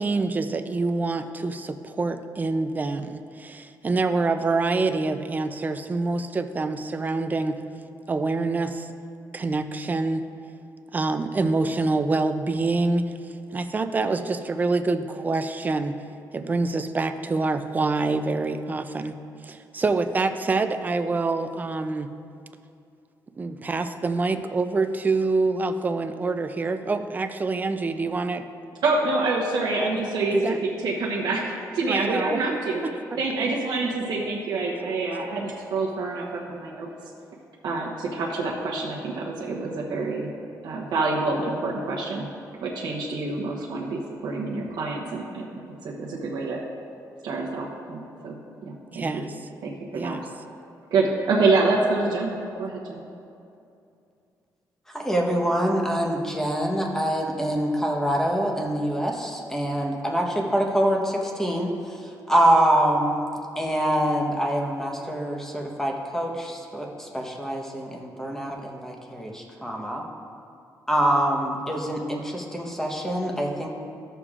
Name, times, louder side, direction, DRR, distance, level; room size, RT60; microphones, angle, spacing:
voice 1, 0.0-7.6 8.1-8.9 9.3-10.2 10.9-13.1 13.5-16.0 16.3-22.1 23.4-28.4 30.3-30.6 31.9-32.4 32.8-32.9 33.4-33.5 48.9-49.5 49.9-50.2, right 3 dB, 25° right, 9 dB, 0.4 m, -26 dB
voice 2, 28.8-30.4 30.8-32.8 33.2-36.9 37.6-40.3 40.6-42.3 42.6-45.5 45.8-46.6 47.2-49.2 49.6-50.2 50.9-52.3 52.6-53.0, right 3 dB, 75° right, -3 dB, 0.9 m, -26 dB
voice 3, 54.9-63.2 63.6-70.1 70.9-73.7, right 1 dB, 5° left, 0 dB, 1.0 m, -25 dB
13.5 x 6.7 x 2.4 m, 2.6 s
cardioid pair, 125°, 7 cm